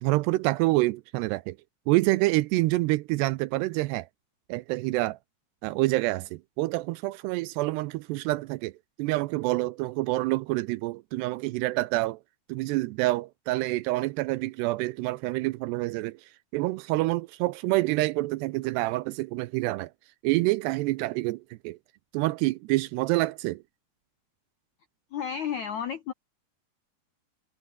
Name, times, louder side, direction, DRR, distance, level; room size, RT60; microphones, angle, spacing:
voice 1, 0.0-1.6 1.9-4.1 4.5-5.2 5.6-8.7 9.0-12.2 12.5-16.2 16.5-19.9 20.2-21.8 22.1-23.6, right 19 dB, 80° right, 2.5 m, -27 dB
voice 2, 25.1-26.1, left 8 dB, 70° left, 1.7 m, -32 dB
omnidirectional pair, 5.2 m